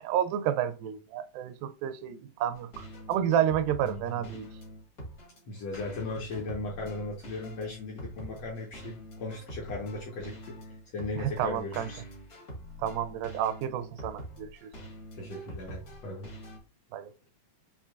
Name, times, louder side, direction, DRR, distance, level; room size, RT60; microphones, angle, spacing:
voice 1, 0.0-4.5 11.2-11.9 12.8-14.7 16.9-17.1, right 10 dB, 85° right, 2.3 m, -30 dB
sound 1, 2.5-16.6, equal, 55° left, 1.0 m, -45 dB
voice 2, 3.8-4.3 5.5-12.0 15.1-16.3, left 2 dB, 70° left, 1.6 m, -37 dB
6.6 x 2.8 x 2.3 m
omnidirectional pair, 4.0 m